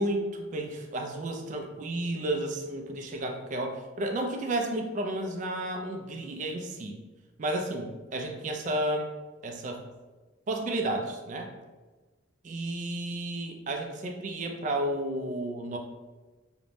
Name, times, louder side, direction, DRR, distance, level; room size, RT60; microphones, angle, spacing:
voice 1, 0.0-7.0 7.4-9.1 9.4-9.8 10.5-11.5 12.4-15.8, right 1 dB, 40° right, 4 dB, 0.3 m, -32 dB
2.5 x 2.0 x 3.1 m, 1.3 s
head